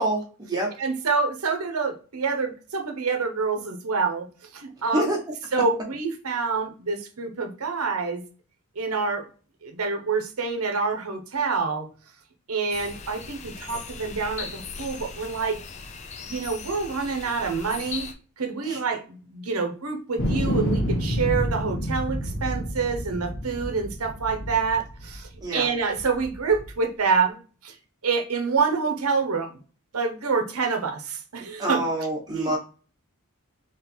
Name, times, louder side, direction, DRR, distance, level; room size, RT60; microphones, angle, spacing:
voice 1, 0.0-0.7 4.9-5.2 18.6-18.8 25.4-25.7 31.6-32.6, right 1 dB, 15° right, 1.2 m, -26 dB
voice 2, 0.8-4.3 4.5-5.1 5.5-8.2 8.8-9.3 9.6-11.9 12.5-15.6 16.2-27.8 28.0-29.6 29.9-31.9 32.3-32.6, right 4 dB, 85° right, 0.9 m, -27 dB
sound 1, 12.7-18.1, left 5 dB, 30° left, 0.5 m, -39 dB
sound 2, 20.2-25.4 25.9-26.7, equal, 60° left, 1.2 m, -28 dB
3.9 x 3.1 x 4.4 m
head